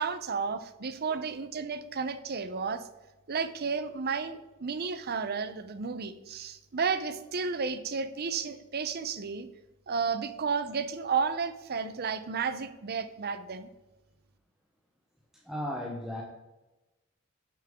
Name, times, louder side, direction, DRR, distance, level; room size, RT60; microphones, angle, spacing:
voice 1, 0.0-2.9 3.3-9.5 9.9-13.7, right 5 dB, 50° right, 12 dB, 0.7 m, -32 dB
voice 2, 15.4-16.2, equal, ahead, -1 dB, 0.9 m, -35 dB
10.5 x 7.4 x 3.7 m, 1.0 s
head